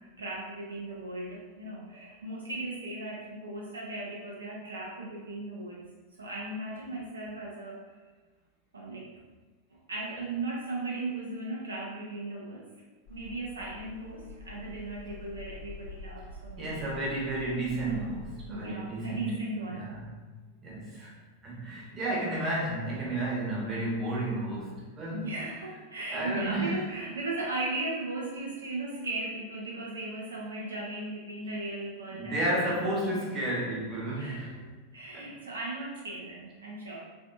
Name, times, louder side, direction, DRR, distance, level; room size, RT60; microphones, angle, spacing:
voice 1, 0.0-5.8 6.2-8.0 8.7-9.1 9.9-12.6 13.1-16.8 17.7-18.0 18.5-19.9 25.1-32.8 34.2-34.4 34.9-37.0, right 2 dB, 70° right, -3 dB, 0.4 m, -37 dB
sound 1, 13.1-18.5, left 2 dB, 50° left, 0.6 m, -46 dB
voice 2, 16.6-19.4 19.7-20.1 20.6-21.1 21.4-25.2 26.1-26.8 32.1-34.6 35.1-35.3, right 1 dB, 25° right, -4 dB, 0.9 m, -32 dB
3.3 x 2.6 x 2.3 m, 1.3 s
figure-of-eight pair, 90°, 0 cm